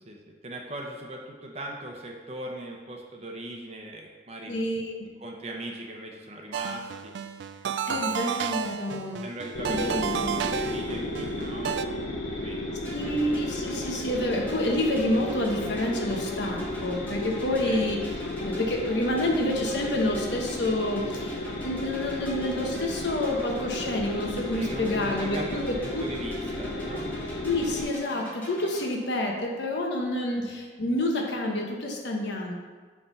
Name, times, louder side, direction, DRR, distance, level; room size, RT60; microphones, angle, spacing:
voice 1, 0.0-4.5 5.2-7.1 7.5-8.5 9.2-13.2 17.6-17.8 24.6-27.1 30.3-30.5, right 1 dB, 35° right, 1 dB, 0.8 m, -40 dB
voice 2, 4.5-5.1 7.9-9.2 9.7-10.5 12.9-18.0 18.4-26.1 27.4-32.5, left 1 dB, 70° left, 0 dB, 1.1 m, -28 dB
sound 1, 6.5-11.9, right 7 dB, 70° right, 0.3 m, -32 dB
sound 2, 9.5-27.8, left 1 dB, 90° left, 1.1 m, -34 dB
sound 3, 12.8-28.9, left 1 dB, 10° left, 1.2 m, -43 dB
7.9 x 3.5 x 5.5 m, 1.5 s
head